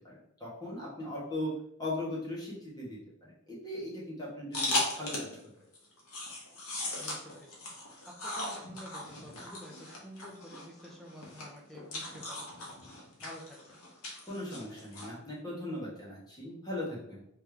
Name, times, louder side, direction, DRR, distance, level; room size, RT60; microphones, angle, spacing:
voice 1, 0.0-1.5 1.8-5.3 14.3-17.2, left 1 dB, 20° left, -6 dB, 1.3 m, -39 dB
sound 1, 4.5-5.4 5.7-15.1, left 2 dB, 75° left, 1.2 m, -38 dB
voice 2, 7.0-7.6 8.0-13.8, equal, ahead, -2 dB, 0.7 m, -50 dB
3.4 x 3.3 x 3.4 m, 0.74 s
head